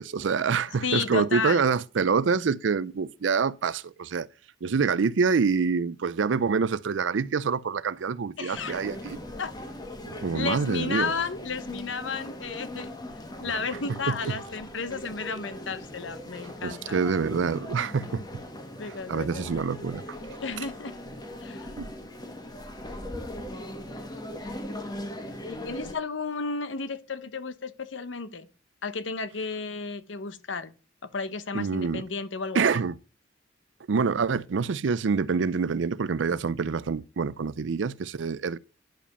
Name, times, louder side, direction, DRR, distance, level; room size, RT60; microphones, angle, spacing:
voice 1, 0.0-4.3 4.6-9.2 10.1-11.1 13.5-13.6 14.1-14.2 16.6-18.2 18.8-20.2 21.8-21.9 31.5-32.0 32.5-33.0 33.9-38.6, right 5 dB, 75° right, 0.5 m, -26 dB
voice 2, 0.8-1.6 8.4-8.8 9.4-9.5 10.3-12.9 13.4-17.0 18.8-19.5 20.4-20.9 21.4-21.7 25.4-28.5 28.8-30.7 31.1-32.7, left 4 dB, 75° left, 1.0 m, -33 dB
sound 1, 8.5-25.9, left 1 dB, 20° left, 1.5 m, -40 dB
10.5 x 5.0 x 6.8 m
head